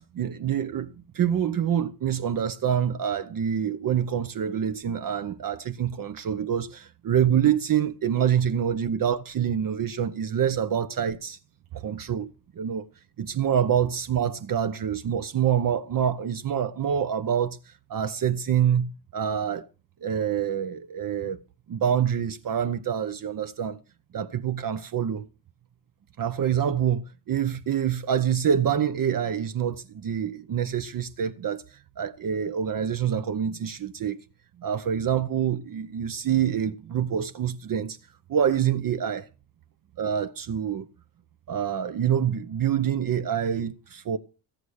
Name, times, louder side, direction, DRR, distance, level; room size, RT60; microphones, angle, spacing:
voice 1, 0.0-11.4 11.7-12.9 13.2-19.7 20.0-21.4 21.7-23.8 24.1-25.3 26.2-34.2 34.6-38.0 38.3-39.3 40.0-40.9 41.5-44.2, right 9 dB, 45° right, 0.9 m, -26 dB
16.0 x 8.5 x 6.4 m
cardioid pair, 160°, 48 cm